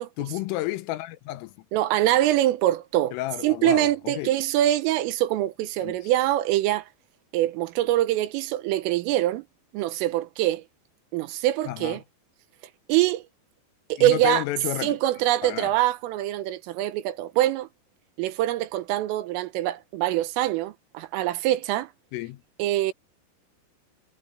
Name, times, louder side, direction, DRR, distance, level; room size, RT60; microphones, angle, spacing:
voice 1, 0.2-1.7 3.1-4.3 5.8-6.1 11.7-12.0 14.0-15.0 15.4-15.7 22.1-22.4, left 16 dB, 90° left, 3.5 m, -31 dB
voice 2, 1.7-3.2 3.4-6.9 7.3-9.5 9.7-10.6 11.1-12.0 12.9-13.2 13.9-14.4 14.8-17.7 18.2-21.9 22.6-22.9, right 14 dB, 85° right, 3.6 m, -24 dB
omnidirectional pair, 5.9 m